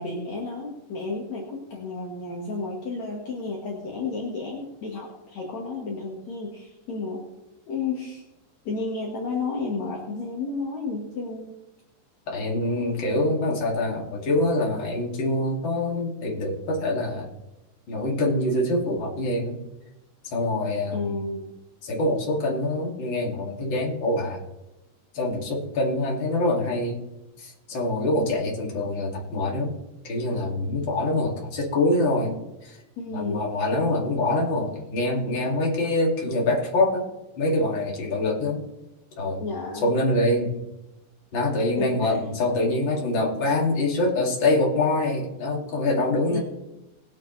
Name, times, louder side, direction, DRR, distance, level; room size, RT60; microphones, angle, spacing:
voice 1, 0.0-7.2 7.7-8.2 8.6-11.5 20.9-21.5 33.0-33.4 39.4-39.9 41.8-42.2 46.0-46.4, left 3 dB, 55° left, -2 dB, 2.9 m, -32 dB
voice 2, 12.3-17.3 17.9-19.6 20.3-21.2 21.8-24.4 25.1-27.0 27.4-29.7 30.1-32.3 32.6-32.8 33.1-37.0 37.4-38.6 39.2-39.4 39.8-40.6 41.3-46.4, left 2 dB, 35° left, -3 dB, 3.1 m, -25 dB
20.0 x 9.1 x 3.4 m, 0.97 s
omnidirectional pair, 4.0 m